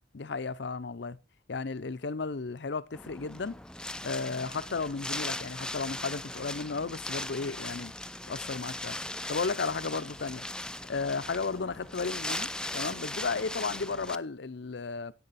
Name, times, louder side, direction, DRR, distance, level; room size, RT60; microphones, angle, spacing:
voice 1, 0.1-1.2 1.5-3.6 4.0-7.9 8.3-9.0 9.3-10.4 10.9-15.1, left 4 dB, 65° left, 0.6 m, -34 dB
Wind, 2.9-14.2, left 1 dB, 5° left, 0.4 m, -38 dB
sound 1, 10.2-14.2, right 5 dB, 65° right, 4.9 m, -65 dB
11.0 x 8.5 x 4.1 m
head